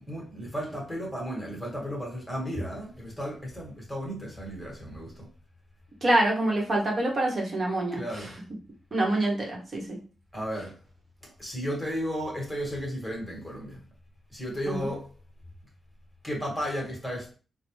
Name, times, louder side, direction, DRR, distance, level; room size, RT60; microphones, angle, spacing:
voice 1, 0.0-5.3 7.9-8.4 10.3-10.8 11.2-13.8 14.3-15.1 16.2-17.3, equal, 5° left, 1.6 m, -34 dB
voice 2, 6.0-8.0 8.9-10.0 14.7-14.9, right 1 dB, 45° right, 1.3 m, -26 dB
4.0 x 2.4 x 3.2 m
cardioid pair, 100°, 0 cm